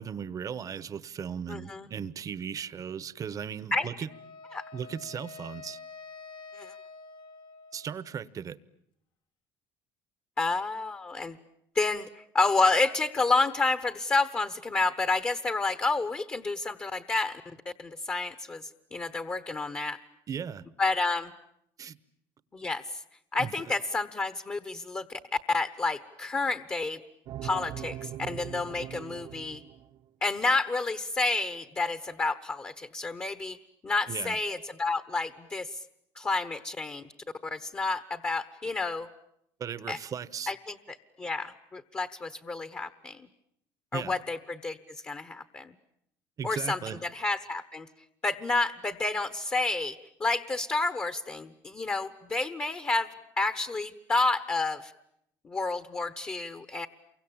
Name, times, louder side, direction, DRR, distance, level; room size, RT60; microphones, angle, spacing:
voice 1, 0.0-4.1 4.7-5.8 7.7-8.6 20.3-20.6 21.8-22.0 23.4-23.7 34.1-34.4 39.6-40.5 43.9-44.2 46.4-47.0, right 7 dB, 40° right, 1.0 m, -37 dB
voice 2, 1.5-1.9 3.7-3.9 4.5-4.6 6.6-6.7 10.4-11.4 11.7-20.0 20.8-21.3 22.5-23.0 23.3-25.2 25.5-27.0 27.4-29.6 30.2-33.6 33.8-35.8 36.2-37.0 37.4-39.1 39.9-40.0 40.5-43.3 43.9-44.8 45.0-45.7 46.4-47.9 48.2-54.9 55.4-56.9, left 3 dB, 25° left, 1.1 m, -30 dB
Wind instrument woodwind instrument, 4.1-8.2, left 4 dB, 55° left, 1.2 m, -47 dB
sound 1, 27.3-30.0, right 11 dB, 60° right, 1.1 m, -41 dB
28.5 x 24.0 x 8.9 m
cardioid pair, 120°, 9 cm